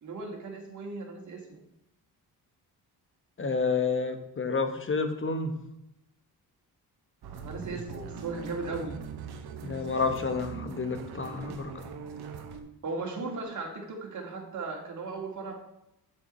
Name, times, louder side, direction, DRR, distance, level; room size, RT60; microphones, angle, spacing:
voice 1, 0.0-1.6 7.4-9.0 12.8-15.5, right 3 dB, 50° right, 0 dB, 2.3 m, -37 dB
voice 2, 3.4-5.5 9.6-11.7, left 4 dB, 30° left, 8 dB, 1.2 m, -29 dB
sound 1, 7.2-12.6, right 5 dB, 80° right, 1.2 m, -41 dB
7.2 x 6.6 x 4.3 m, 0.84 s
cardioid pair, 95°, 39 cm